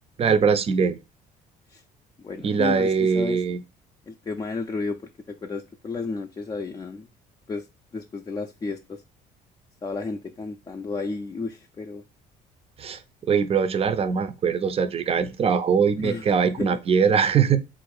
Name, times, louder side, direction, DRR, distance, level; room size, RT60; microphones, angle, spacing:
voice 1, 0.2-1.0 2.4-3.6 12.8-17.6, right 6 dB, 35° right, 0.5 m, -22 dB
voice 2, 2.2-3.4 4.1-5.0 5.3-7.1 7.5-7.7 7.9-9.0 9.8-12.0 16.0-16.3 16.6-16.8, left 4 dB, 25° left, 0.4 m, -32 dB
3.9 x 2.6 x 4.7 m
cardioid pair, 110°, 17 cm